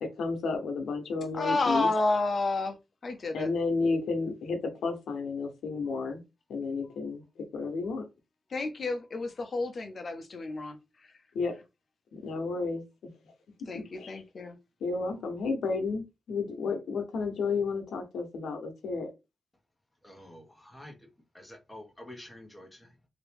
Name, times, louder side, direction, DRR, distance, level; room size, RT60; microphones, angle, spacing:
voice 1, 0.0-1.9 3.3-6.2 6.5-8.0 11.3-11.5 12.1-13.3 13.7-14.2 14.8-19.1, left 4 dB, 85° left, 0.9 m, -32 dB
voice 2, 1.3-2.8 3.0-3.5 8.5-10.8 11.0-11.1 13.7-14.6, left 2 dB, 45° left, 0.9 m, -30 dB
voice 3, 20.0-21.1 21.3-23.0, left 1 dB, 10° left, 1.4 m, -48 dB
2.9 x 2.9 x 3.4 m
cardioid pair, 90°, 0 cm